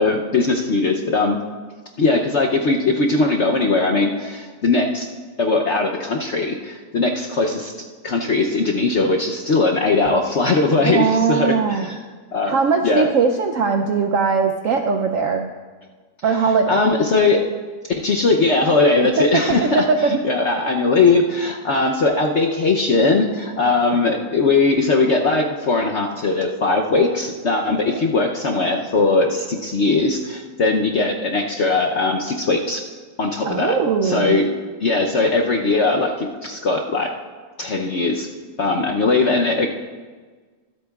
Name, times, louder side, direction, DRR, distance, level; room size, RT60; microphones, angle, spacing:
voice 1, 0.0-1.4 2.0-5.1 5.4-7.7 8.0-12.0 12.3-12.5 12.8-13.1 16.7-17.4 18.0-32.8 33.2-33.8 34.0-34.5 34.8-37.1 37.6-38.3 38.6-39.7, left 3 dB, 60° left, 1 dB, 0.7 m, -19 dB
voice 2, 10.8-11.9 12.5-15.5 16.2-16.8 19.2-19.3 19.7-20.1 27.8-28.0 33.4-34.4, right 5 dB, 75° right, 5 dB, 0.7 m, -20 dB
23.5 x 8.3 x 2.3 m, 1.4 s
omnidirectional pair, 1.9 m